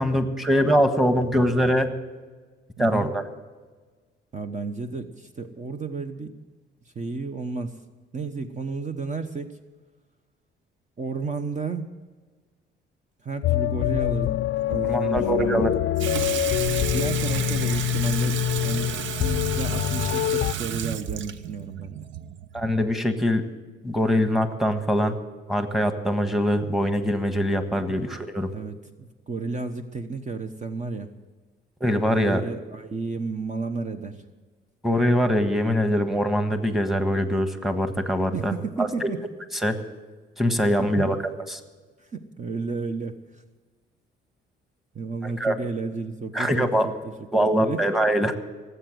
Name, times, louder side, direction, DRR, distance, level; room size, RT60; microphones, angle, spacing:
voice 1, 0.0-1.9 2.8-3.2 14.9-15.7 22.5-23.4 23.8-25.2 25.5-28.5 31.8-32.4 34.8-38.5 38.8-39.1 39.6-39.8 40.4-41.6 45.2-45.5 46.3-46.9 47.3-48.4, equal, ahead, 7 dB, 1.4 m, -23 dB
voice 2, 2.8-3.1 4.3-6.3 6.9-7.8 8.1-9.5 11.0-11.9 13.2-14.4 14.7-15.7 16.9-22.1 27.7-28.0 28.5-31.1 32.0-34.2 38.3-39.2 41.0-41.2 42.1-43.2 44.9-47.8, right 4 dB, 35° right, 7 dB, 1.0 m, -32 dB
sound 1, 13.4-20.5, left 13 dB, 65° left, 0.4 m, -25 dB
Water tap faucet / Sink (filling or washing), 16.0-23.0, right 9 dB, 70° right, 0.7 m, -32 dB
18.5 x 8.1 x 7.8 m, 1.4 s
cardioid pair, 90°, 20 cm